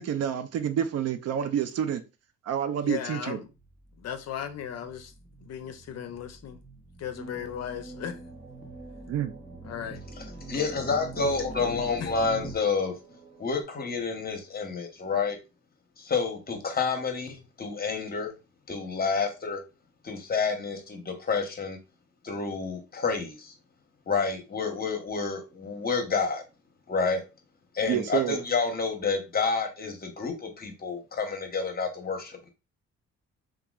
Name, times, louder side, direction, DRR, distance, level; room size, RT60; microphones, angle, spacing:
voice 1, 0.0-2.0 2.5-3.4 9.1-9.3 27.9-28.4, right 9 dB, 55° right, 0.4 m, -28 dB
voice 2, 2.8-3.5 4.0-5.1 5.4-6.6 7.0-8.2 9.6-10.0 11.2-11.3 11.6-12.1, left 9 dB, 55° left, 0.5 m, -37 dB
sound 1, 3.5-12.6, right 2 dB, 5° right, 0.6 m, -44 dB
sound 2, 7.1-13.6, right 2 dB, 35° right, 1.1 m, -49 dB
voice 3, 10.5-12.9 13.4-15.4 16.0-18.3 18.7-19.6 20.0-21.8 22.2-23.5 24.1-26.4 26.9-27.2 27.7-32.5, left 4 dB, 30° left, 0.8 m, -29 dB
2.9 x 2.3 x 2.3 m
cardioid pair, 90°, 30 cm